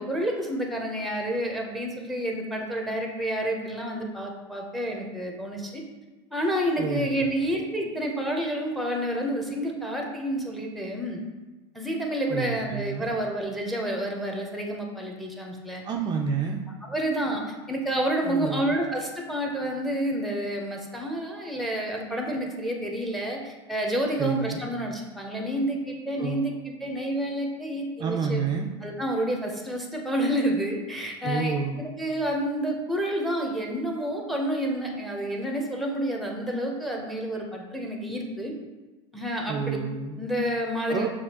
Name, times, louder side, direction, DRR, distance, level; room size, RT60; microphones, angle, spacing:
voice 1, 0.0-5.8 6.3-11.2 11.7-15.8 16.8-17.4 17.7-28.4 28.8-38.5 39.1-39.8 40.2-41.1, right 1 dB, ahead, 1 dB, 0.7 m, -29 dB
voice 2, 6.8-7.1 12.3-13.1 15.9-16.6 18.2-18.7 24.2-24.6 26.2-26.4 28.0-28.7 31.2-31.8 39.5-40.2 40.9-41.1, right 5 dB, 30° right, 1 dB, 0.4 m, -29 dB
6.4 x 2.4 x 2.8 m, 1.2 s
supercardioid pair, 110°, 14 cm